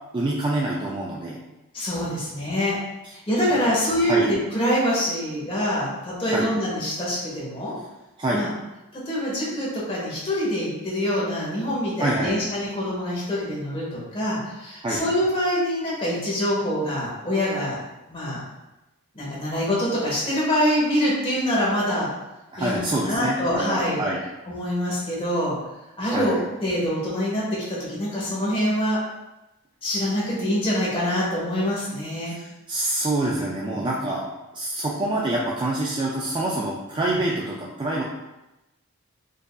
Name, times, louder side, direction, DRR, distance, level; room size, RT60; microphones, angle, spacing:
voice 1, 0.1-1.4 3.6-3.7 4.1-4.3 6.2-6.5 8.2-8.4 12.0-12.4 14.8-15.0 22.5-24.2 26.1-26.4 32.3-34.3 34.5-38.0, right 1 dB, 20° right, -4 dB, 0.3 m, -26 dB
voice 2, 1.7-2.8 3.3-7.7 8.3-8.5 8.9-17.7 18.1-18.4 19.1-22.1 22.6-24.0 24.5-25.5 26.0-29.0 29.8-32.4 33.7-33.9 36.9-37.1, equal, 25° left, -6 dB, 1.2 m, -25 dB
4.9 x 2.6 x 2.2 m, 0.98 s
head